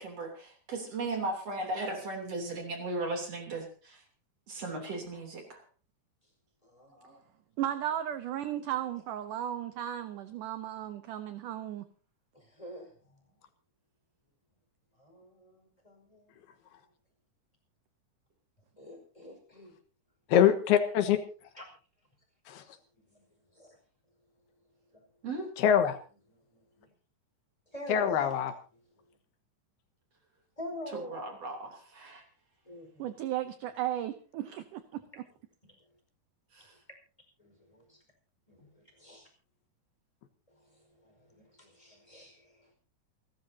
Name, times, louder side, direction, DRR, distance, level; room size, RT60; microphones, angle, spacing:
voice 1, 0.0-4.0 4.5-5.6 7.0-7.2 25.2-25.5 30.9-32.2 36.6-36.7, right 2 dB, 40° right, 3 dB, 4.0 m, -37 dB
voice 2, 6.6-7.0 12.3-13.2 15.0-16.4 18.8-19.7 21.6-21.7 22.5-22.6 23.1-23.2 23.5-23.8 26.5-26.9 27.7-28.3 30.6-31.2 32.6-33.1 37.4-38.0 38.5-39.3 41.0-42.7, equal, 10° left, 2 dB, 4.7 m, -46 dB
voice 3, 7.6-11.9 33.0-35.0, right 11 dB, 75° right, 10 dB, 2.0 m, -35 dB
voice 4, 20.3-21.2 22.5-22.6 25.6-26.0 27.9-28.5, left 9 dB, 85° left, 8 dB, 3.2 m, -24 dB
28.5 x 12.5 x 2.8 m, 0.38 s
omnidirectional pair, 4.5 m